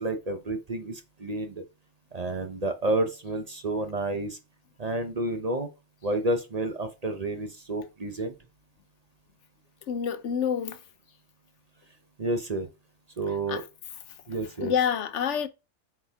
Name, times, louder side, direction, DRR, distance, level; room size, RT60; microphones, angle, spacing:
voice 1, 0.0-1.6 2.1-4.4 4.8-5.7 6.0-8.4 12.2-12.7 13.2-13.6 14.3-14.7, right 2 dB, 35° right, 0.8 m, -30 dB
voice 2, 9.9-10.8 13.5-13.6 14.6-15.5, left 8 dB, 75° left, 1.1 m, -27 dB
8.4 x 4.4 x 3.5 m
omnidirectional pair, 1.2 m